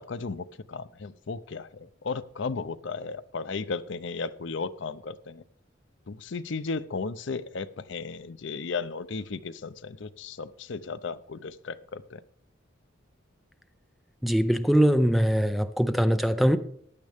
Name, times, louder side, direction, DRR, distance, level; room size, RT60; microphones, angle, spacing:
voice 1, 0.0-5.4 6.1-12.2, left 4 dB, 65° left, 0.6 m, -35 dB
voice 2, 14.2-16.6, equal, ahead, 0.5 m, -22 dB
15.0 x 11.0 x 3.5 m
head